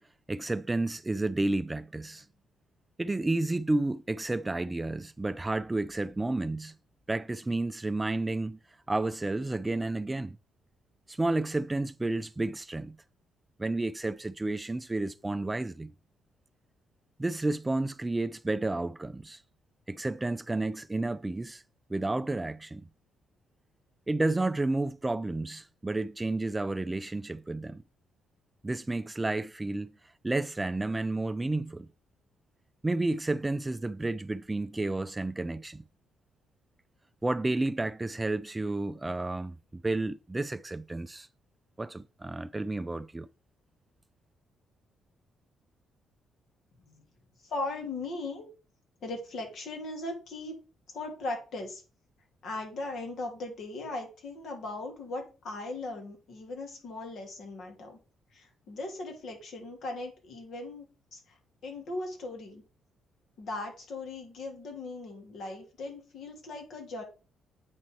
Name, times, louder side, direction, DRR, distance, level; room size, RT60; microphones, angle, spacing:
voice 1, 0.3-2.2 3.0-6.7 7.1-8.6 8.9-10.4 11.1-13.0 13.6-15.9 17.2-19.4 19.9-21.6 21.9-22.9 24.1-27.8 28.6-29.9 30.2-31.9 32.8-35.8 37.2-41.3 41.8-43.3, right 2 dB, 15° right, 0.4 m, -31 dB
voice 2, 47.4-48.4 49.0-50.6 50.9-51.8 52.4-58.0 58.3-61.4 61.6-62.6 63.4-67.0, left 2 dB, 65° left, 2.8 m, -38 dB
8.8 x 4.3 x 4.5 m
cardioid pair, 90°, 0 cm